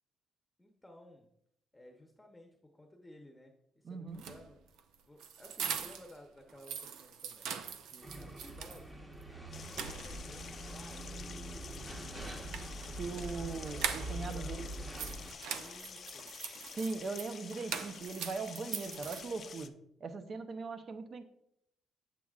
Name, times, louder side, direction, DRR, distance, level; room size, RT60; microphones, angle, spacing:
voice 1, 0.6-1.3 1.7-4.6 5.1-7.5 7.8-9.1 9.5-11.2 12.1-12.4 12.7-14.9 15.5-16.4, left 1 dB, 10° left, 2 dB, 0.9 m, -56 dB
voice 2, 3.8-4.2 13.0-14.7 16.8-19.7 20.0-21.3, right 4 dB, 50° right, 9 dB, 0.8 m, -40 dB
sound 1, 4.1-6.2 6.5-8.8 9.2-9.3 9.6-10.5 12.1-14.4 14.7-19.6, right 7 dB, 85° right, 0.5 m, -42 dB
sound 2, 8.0-15.3, right 1 dB, 20° right, 1.2 m, -44 dB
sound 3, 9.5-19.7, left 7 dB, 50° left, 0.5 m, -49 dB
8.3 x 7.7 x 2.4 m, 0.76 s
cardioid pair, 90°, 0 cm